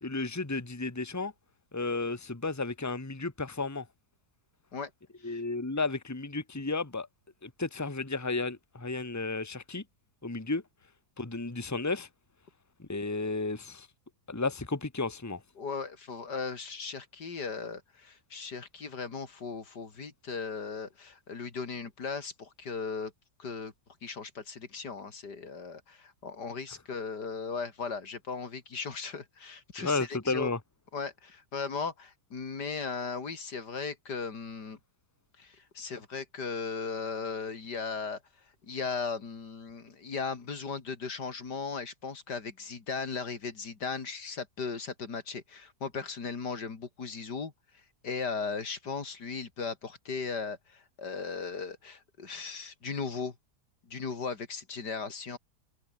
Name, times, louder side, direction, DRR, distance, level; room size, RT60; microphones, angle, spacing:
voice 1, 0.0-1.3 1.7-3.9 5.2-7.1 7.4-9.8 10.2-10.6 11.2-12.1 12.8-13.9 14.3-15.4 29.8-30.6, left 3 dB, 10° left, 1.7 m, -33 dB
voice 2, 15.6-23.1 23.4-23.7 24.0-30.5 30.9-34.8 35.4-38.2 38.6-47.5 48.0-53.3 53.9-55.4, left 5 dB, 85° left, 3.3 m, -37 dB
omnidirectional pair, 1.7 m